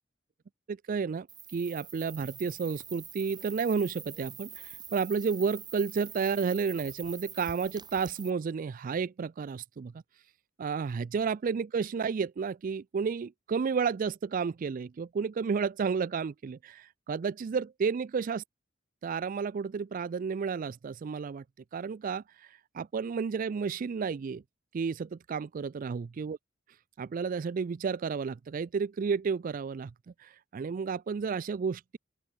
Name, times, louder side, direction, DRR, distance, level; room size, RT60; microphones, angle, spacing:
voice 1, 0.7-9.9 10.6-18.4 19.0-21.4 21.7-24.4 24.7-26.4 27.0-29.9 30.2-32.0, right 5 dB, 45° right, 0.3 m, -32 dB
sound 1, 1.3-8.3, right 7 dB, 20° right, 2.8 m, -46 dB
open air
head